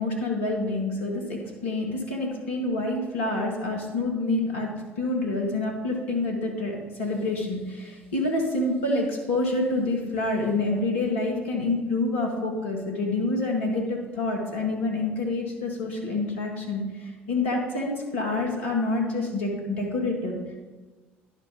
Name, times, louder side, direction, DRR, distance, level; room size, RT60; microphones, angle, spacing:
voice 1, 0.0-4.7 5.0-20.4, left 2 dB, 75° left, -1 dB, 1.6 m, -27 dB
11.0 x 4.2 x 5.1 m, 1.3 s
figure-of-eight pair, 60°, 6 cm